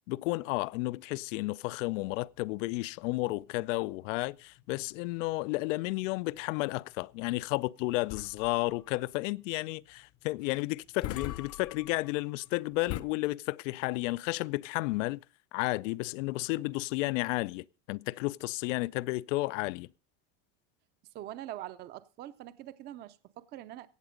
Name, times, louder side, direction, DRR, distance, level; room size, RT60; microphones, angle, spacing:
voice 1, 0.1-15.2 15.5-19.9, left 21 dB, 85° left, 0.5 m, -32 dB
sound 1, 1.7-13.0, left 14 dB, 40° left, 0.7 m, -45 dB
voice 2, 21.1-23.9, right 13 dB, 30° right, 0.5 m, -43 dB
15.5 x 8.4 x 5.1 m
cardioid pair, 160°, 37 cm